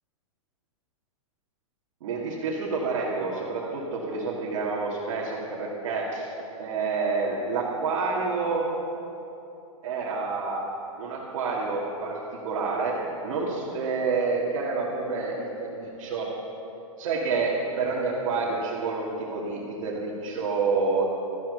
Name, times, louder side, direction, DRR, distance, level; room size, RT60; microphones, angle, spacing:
voice 1, 2.0-6.3 6.6-8.7 9.8-10.6 11.0-13.0 13.2-16.3 17.0-21.0, right 4 dB, 60° right, -5 dB, 2.6 m, -28 dB
14.0 x 10.5 x 6.9 m, 2.9 s
hypercardioid pair, 135°, 18 cm